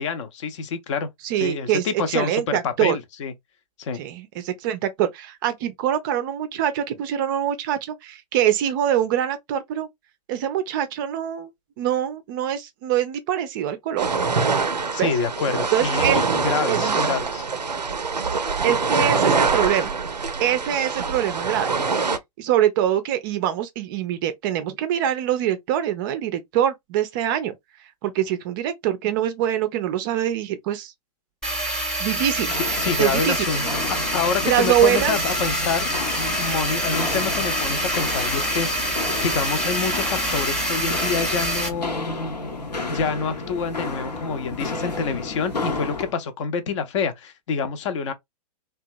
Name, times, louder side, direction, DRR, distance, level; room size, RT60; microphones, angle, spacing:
voice 1, 0.0-1.1 1.4-3.3 3.8-4.0 14.9-17.4 32.8-33.6 33.9-42.3 42.9-48.1, left 5 dB, 45° left, 0.6 m, -27 dB
voice 2, 1.2-3.0 3.9-9.9 10.3-11.5 11.8-14.1 15.0-15.1 15.7-17.0 18.6-19.9 20.4-21.7 22.4-27.5 28.0-30.9 32.0-32.5 33.0-33.7 34.4-35.2, right 10 dB, 30° right, 0.4 m, -24 dB
sound 1, 14.0-22.2, right 4 dB, 90° right, 0.5 m, -24 dB
sound 2, 31.4-41.7, equal, 5° left, 0.7 m, -26 dB
Walk footsteps, 32.3-46.1, left 3 dB, 80° left, 0.8 m, -32 dB
2.8 x 2.3 x 2.5 m
figure-of-eight pair, 110°, 21 cm